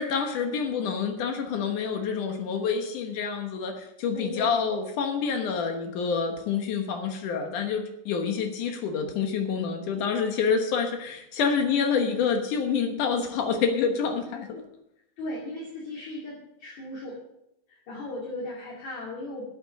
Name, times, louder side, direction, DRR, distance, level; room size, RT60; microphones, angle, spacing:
voice 1, 0.0-14.6, left 6 dB, 70° left, 4 dB, 2.0 m, -27 dB
voice 2, 4.1-4.6 15.2-17.2 17.7-19.5, left 1 dB, 45° left, -4 dB, 3.2 m, -36 dB
11.5 x 8.8 x 6.5 m, 0.81 s
omnidirectional pair, 5.3 m